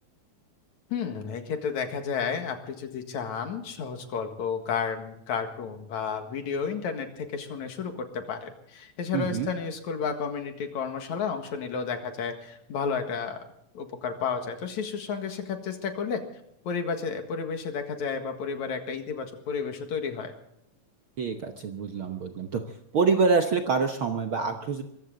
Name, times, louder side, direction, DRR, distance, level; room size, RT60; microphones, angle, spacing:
voice 1, 0.9-13.4 13.7-16.2 16.6-20.3, left 6 dB, 65° left, 5 dB, 3.0 m, -32 dB
voice 2, 9.1-9.5 21.2-22.6 22.9-24.8, right 4 dB, 60° right, 5 dB, 1.4 m, -26 dB
23.0 x 15.0 x 3.9 m, 0.75 s
omnidirectional pair, 3.6 m